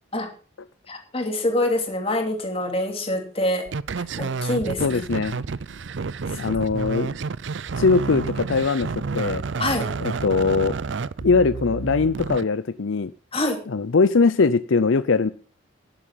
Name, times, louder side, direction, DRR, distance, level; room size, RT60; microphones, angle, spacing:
voice 1, 0.9-3.7 4.2-5.0 9.6-9.9 13.3-13.6, left 1 dB, 30° left, 4 dB, 2.9 m, -25 dB
sound 1, 3.7-12.4, right 4 dB, 65° right, 0.5 m, -30 dB
voice 2, 4.8-5.4 6.4-7.1 7.8-9.4 10.0-10.8 11.2-13.1 13.7-15.3, left 4 dB, 75° left, 14 dB, 0.6 m, -21 dB
11.0 x 11.0 x 5.7 m, 0.37 s
head